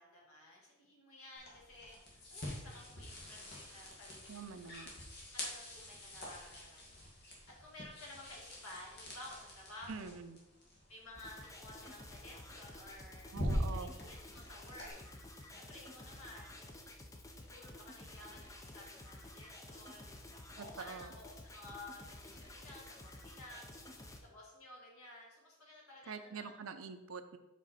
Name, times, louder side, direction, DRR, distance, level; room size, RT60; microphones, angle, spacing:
voice 1, 0.0-4.7 5.3-10.2 10.9-13.3 13.7-15.0 15.5-16.6 17.3-20.2 20.6-23.7 24.2-26.5, left 1 dB, 80° left, -3 dB, 1.9 m, -54 dB
sound 1, 1.3-14.9, equal, 50° left, 1.6 m, -45 dB
voice 2, 4.3-4.9 9.9-10.4 13.3-13.9 20.6-21.1 26.1-27.4, right 5 dB, 75° right, 10 dB, 0.5 m, -45 dB
sound 2, 11.1-24.2, left 1 dB, 15° left, 0.5 m, -52 dB
5.2 x 5.1 x 4.1 m, 1.0 s
head